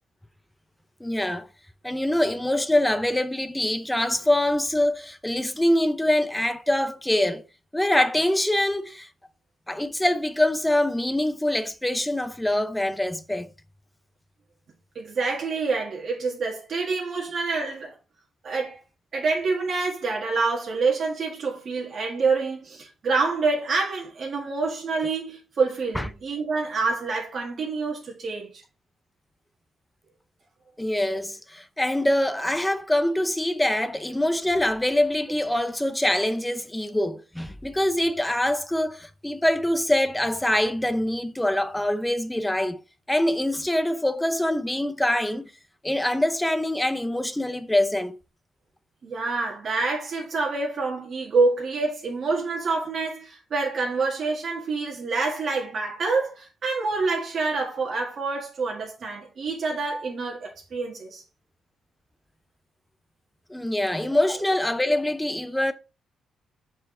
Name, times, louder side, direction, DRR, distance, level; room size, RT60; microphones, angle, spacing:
voice 1, 1.0-1.5 1.8-7.4 7.7-9.1 9.7-13.5 25.9-26.1 30.8-42.8 43.1-45.5 45.8-48.1 63.5-65.7, left 1 dB, 5° left, 0.5 m, -24 dB
voice 2, 14.9-17.9 18.4-18.8 19.1-28.6 49.0-61.2 64.0-64.2, right 4 dB, 45° right, 1.6 m, -27 dB
7.1 x 4.4 x 3.7 m
cardioid pair, 140°, 0 cm